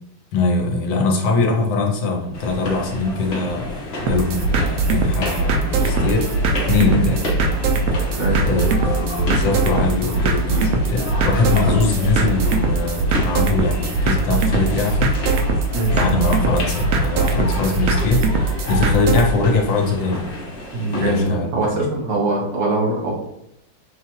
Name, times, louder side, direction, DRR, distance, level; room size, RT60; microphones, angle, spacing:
voice 1, 0.3-6.3 6.7-7.3 8.5-15.1 15.9-20.3 21.0-21.9, left 3 dB, 75° left, 1 dB, 1.4 m, -22 dB
sound 1, 2.3-21.3, left 1 dB, 50° left, 0.8 m, -31 dB
sound 2, 4.1-19.3, right 3 dB, 90° right, 0.7 m, -21 dB
voice 2, 20.7-23.1, right 2 dB, 65° right, -3 dB, 1.8 m, -22 dB
5.6 x 2.4 x 3.0 m, 0.80 s
omnidirectional pair, 2.1 m